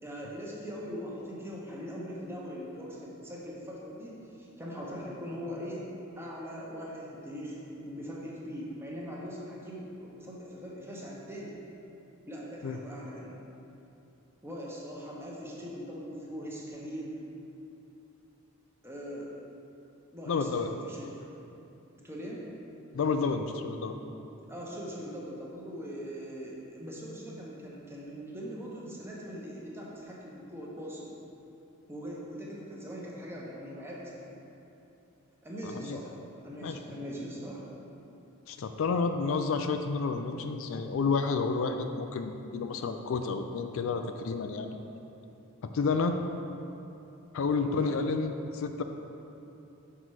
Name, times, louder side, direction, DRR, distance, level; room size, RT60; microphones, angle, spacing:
voice 1, 0.0-5.9 6.2-11.6 12.3-13.4 14.4-17.2 18.8-19.3 20.1-21.1 22.0-22.4 24.5-31.1 31.9-34.3 35.4-36.2 36.4-37.6 47.6-47.9, equal, 10° right, -4 dB, 1.0 m, -41 dB
voice 2, 20.3-20.7 22.9-24.0 35.6-36.0 36.6-36.8 38.5-44.8 45.7-46.2 47.3-48.8, left 4 dB, 65° left, 7 dB, 0.4 m, -30 dB
5.9 x 5.4 x 4.7 m, 2.8 s
head